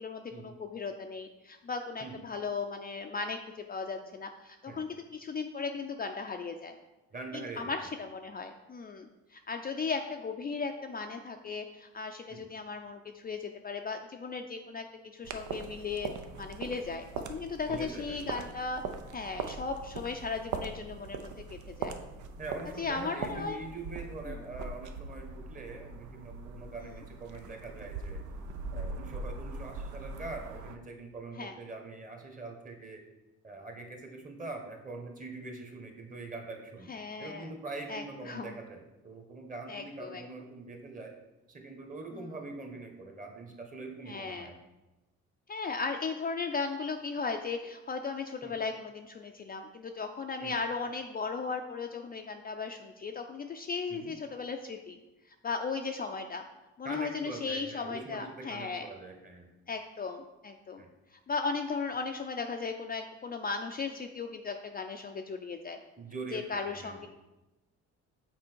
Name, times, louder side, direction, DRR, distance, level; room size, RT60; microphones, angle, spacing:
voice 1, 0.0-6.7 7.3-14.9 15.1-18.8 19.1-21.9 22.8-23.6 24.3-24.4 26.8-27.0 31.3-31.5 36.9-37.5 37.9-38.5 39.7-40.2 42.1-42.3 44.1-44.5 45.5-55.0 55.4-56.4 56.8-58.9 59.7-60.8 61.1-65.8 66.3-67.1, left 4 dB, 30° left, 4 dB, 0.4 m, -36 dB
voice 2, 7.1-7.8 12.3-12.5 17.7-18.5 22.4-28.2 28.7-33.0 33.4-36.9 37.2-41.1 41.5-44.6 48.4-48.5 50.4-50.5 53.9-54.1 56.8-59.5 60.8-60.9 66.0-66.4 66.8-67.1, right 3 dB, 25° right, 3 dB, 1.2 m, -43 dB
sound 1, 15.2-30.8, right 4 dB, 75° right, 0.6 m, -41 dB
6.0 x 4.3 x 4.5 m, 1.0 s
cardioid pair, 90°, 30 cm